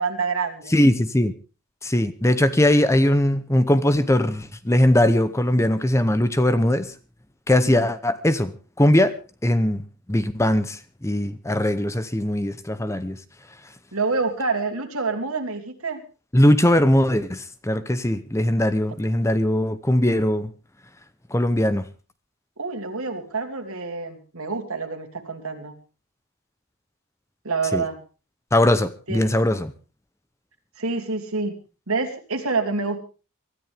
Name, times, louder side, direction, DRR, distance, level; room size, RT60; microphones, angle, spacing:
voice 1, 0.0-0.7 7.6-7.9 13.9-16.0 22.6-25.7 27.4-28.0 29.1-29.3 30.8-31.5 31.9-33.0, right 4 dB, 75° right, 5 dB, 2.9 m, -27 dB
voice 2, 0.7-1.3 1.8-6.9 7.5-9.1 9.4-9.8 10.1-13.2 16.3-20.5 21.3-21.9 27.7-27.8 28.5-29.7, left 1 dB, 15° left, 13 dB, 0.7 m, -20 dB
24.0 x 13.5 x 3.5 m, 0.34 s
head